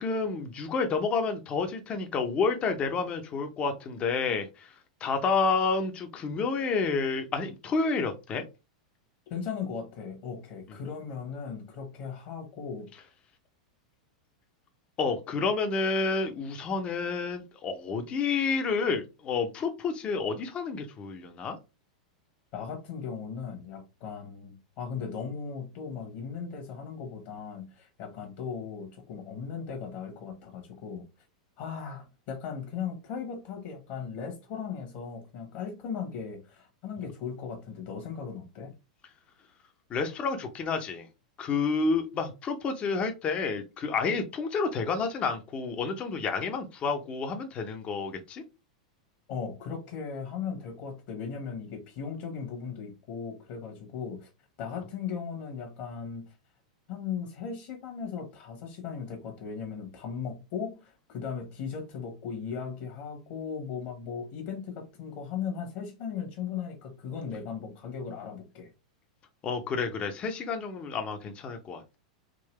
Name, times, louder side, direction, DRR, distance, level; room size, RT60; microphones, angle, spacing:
voice 1, 0.0-4.8 5.0-8.4 15.0-21.6 39.9-41.1 41.4-48.4 69.4-72.0, left 4 dB, 30° left, 0.7 m, -29 dB
voice 2, 9.3-12.9 22.5-31.0 31.6-38.7 49.3-54.3 54.6-56.3 56.9-68.7, left 6 dB, 50° left, 1.3 m, -37 dB
3.7 x 2.7 x 3.2 m
hypercardioid pair, 100°, 4 cm